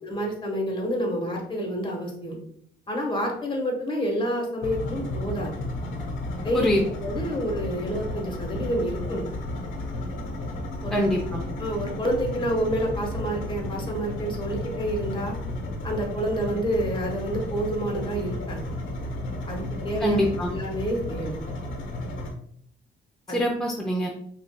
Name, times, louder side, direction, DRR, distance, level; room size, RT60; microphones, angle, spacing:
voice 1, 0.0-2.4 2.9-5.5 6.4-6.7 7.0-9.3 10.8-11.0 11.6-15.4 15.8-18.6 19.5-20.2 20.5-21.4 23.3-23.4, equal, 25° left, 1 dB, 1.2 m, -28 dB
sound 1, 4.6-22.3, left 1 dB, 80° left, 1.0 m, -33 dB
voice 2, 10.9-11.4 20.0-20.5 23.3-24.1, left 1 dB, ahead, -2 dB, 0.5 m, -24 dB
5.9 x 2.5 x 2.2 m, 0.66 s
cardioid pair, 90°, 20 cm